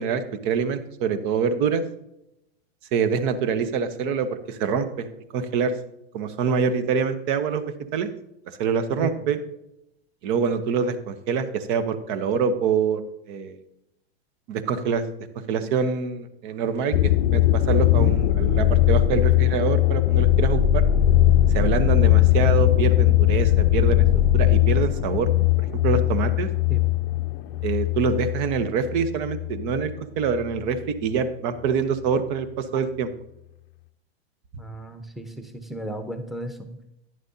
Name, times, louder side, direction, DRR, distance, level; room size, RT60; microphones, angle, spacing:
voice 1, 0.0-1.8 2.9-5.1 5.3-5.7 6.1-8.1 8.6-9.4 10.2-13.0 13.3-13.6 14.5-15.1 15.5-20.8 21.5-24.0 24.3-25.3 25.6-26.5 27.6-33.1, right 6 dB, 50° right, 11 dB, 1.1 m, -25 dB
sound 1, 16.9-30.0 30.3-30.9, left 13 dB, 60° left, 0.6 m, -20 dB
voice 2, 34.6-36.8, right 1 dB, ahead, 7 dB, 0.9 m, -34 dB
11.0 x 10.0 x 2.8 m, 0.85 s
hypercardioid pair, 110°, 32 cm